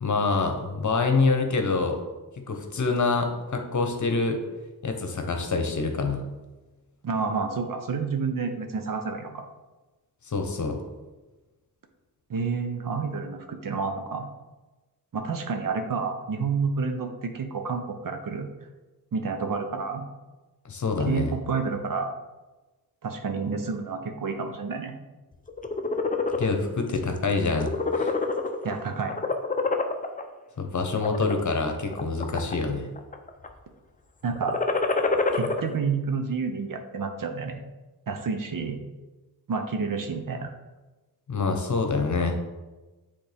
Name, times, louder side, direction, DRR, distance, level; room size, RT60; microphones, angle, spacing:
voice 1, 0.0-2.0 2.5-4.4 4.8-6.3 10.3-10.8 20.6-21.3 26.4-28.2 30.6-32.9 41.3-42.4, left 4 dB, 50° left, 5 dB, 1.0 m, -26 dB
voice 2, 7.0-9.5 12.3-14.3 15.1-18.5 19.1-20.1 21.1-22.1 23.0-24.9 28.6-29.1 34.2-34.6 35.3-37.6 38.1-38.8 39.5-40.5, right 5 dB, 55° right, 6 dB, 0.8 m, -29 dB
sound 1, 25.5-26.5 26.9-27.2 27.5-28.7 29.1-30.2 30.8-31.3 31.9-32.7 33.0-33.5 34.3-35.6, left 3 dB, 20° left, 0.5 m, -26 dB
7.8 x 3.5 x 3.4 m, 1.2 s
cardioid pair, 65°, 38 cm